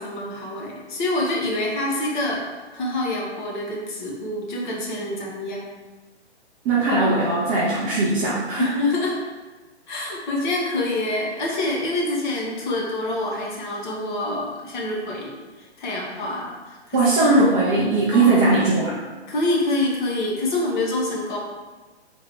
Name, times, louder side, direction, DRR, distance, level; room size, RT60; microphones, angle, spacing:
voice 1, 0.0-2.5 2.7-5.6 8.6-9.2 9.9-17.0 18.1-18.4 19.3-21.4, left 2 dB, 45° left, -2 dB, 1.2 m, -26 dB
voice 2, 6.6-8.7 16.9-18.9, right 2 dB, 15° right, -7 dB, 0.4 m, -19 dB
3.5 x 3.1 x 4.4 m, 1.3 s
hypercardioid pair, 135°, 33 cm